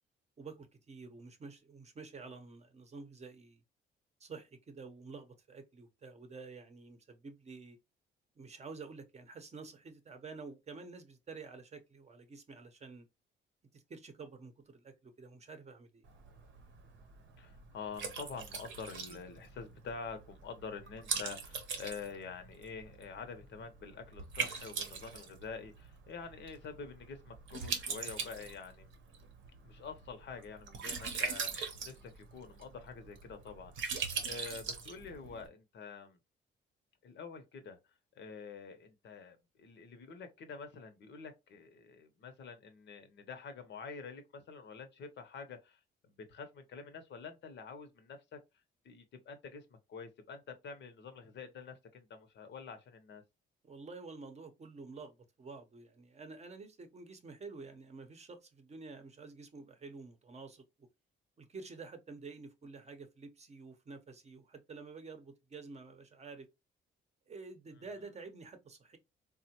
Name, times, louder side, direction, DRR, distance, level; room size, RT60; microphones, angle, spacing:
voice 1, 0.4-3.6 4.2-7.8 8.4-13.1 13.7-16.1 53.6-60.9 61.4-66.5 67.3-69.0, right 4 dB, 35° right, 0.7 m, -49 dB
Liquid, 16.0-35.5, right 6 dB, 75° right, 0.7 m, -42 dB
voice 2, 17.4-28.9 29.6-34.0 34.2-36.2 37.0-37.8 38.2-48.4 48.8-53.2 67.8-67.9, left 5 dB, 65° left, 0.7 m, -47 dB
3.6 x 2.1 x 2.8 m
cardioid pair, 90°, 20 cm